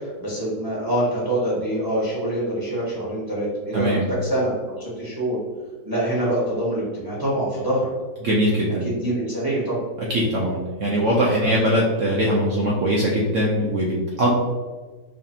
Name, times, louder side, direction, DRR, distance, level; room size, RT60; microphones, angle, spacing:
voice 1, 0.0-5.4 5.8-7.9 8.8-9.8 11.4-11.6, right 1 dB, 20° right, -7 dB, 0.6 m, -25 dB
voice 2, 3.7-4.0 8.2-8.8 10.1-14.4, equal, 70° right, -4 dB, 0.7 m, -21 dB
4.9 x 2.5 x 2.7 m, 1.4 s
omnidirectional pair, 1.9 m